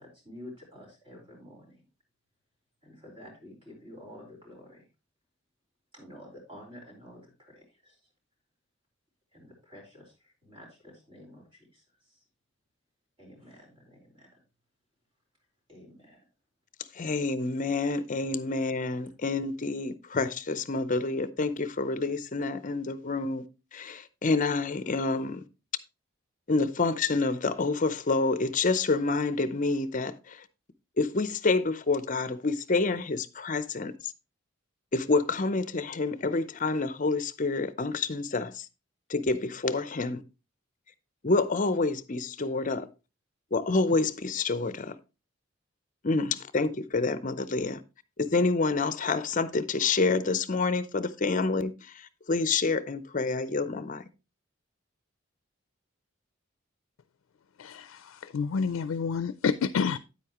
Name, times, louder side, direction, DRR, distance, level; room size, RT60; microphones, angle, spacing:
voice 1, 0.0-1.8 2.8-4.8 5.9-8.0 9.3-11.8 12.1-12.2 13.2-14.4 15.7-16.2, left 1 dB, 25° right, 4.4 m, -50 dB
voice 2, 16.9-23.5 23.7-25.4 26.5-30.5 31.0-34.1 34.9-38.7 39.1-40.2 41.2-42.9 43.5-45.0 46.0-47.8 48.2-54.0, left 3 dB, 40° left, 0.6 m, -28 dB
voice 3, 57.6-60.0, left 5 dB, 85° left, 0.4 m, -29 dB
9.3 x 8.3 x 2.9 m
head